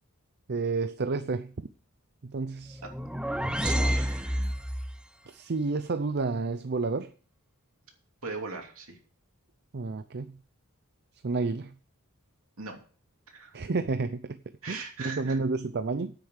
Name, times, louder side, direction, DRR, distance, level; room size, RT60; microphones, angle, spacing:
voice 1, 0.5-1.5 2.2-2.8 5.3-7.1 9.7-10.4 11.2-11.7 13.5-14.4 14.7-16.1, right 3 dB, 50° right, 11 dB, 0.6 m, -30 dB
sound 1, 2.7-5.0, equal, 5° right, 0.5 m, -29 dB
voice 2, 3.6-4.6 8.2-9.0 12.6-12.8 13.3-13.6 14.6-15.4, right 4 dB, 65° right, 3 dB, 2.9 m, -39 dB
9.9 x 8.4 x 6.5 m, 0.41 s
head